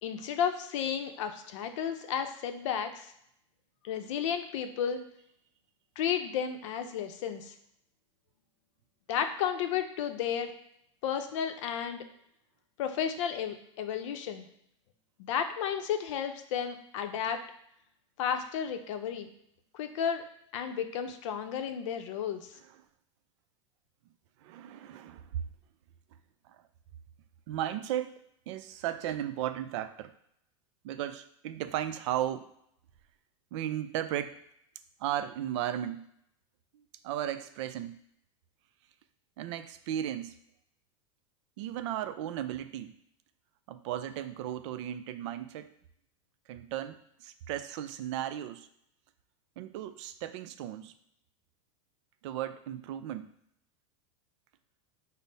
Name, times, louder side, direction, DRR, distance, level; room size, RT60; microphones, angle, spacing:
voice 1, 0.0-3.1 3.8-5.0 6.0-7.5 9.1-10.5 11.0-12.0 12.8-14.5 15.2-17.4 18.2-19.3 19.7-20.2 20.5-22.5, left 8 dB, 70° left, 7 dB, 0.6 m, -33 dB
voice 2, 24.4-25.4 26.5-26.6 27.5-30.1 30.8-32.5 33.5-34.4 35.0-36.1 36.7-38.0 39.4-40.3 41.6-42.9 43.7-45.7 46.5-48.7 49.6-50.9 52.2-53.3, right 11 dB, 65° right, 11 dB, 0.4 m, -35 dB
5.3 x 2.0 x 4.0 m, 0.74 s
hypercardioid pair, 110°, 16 cm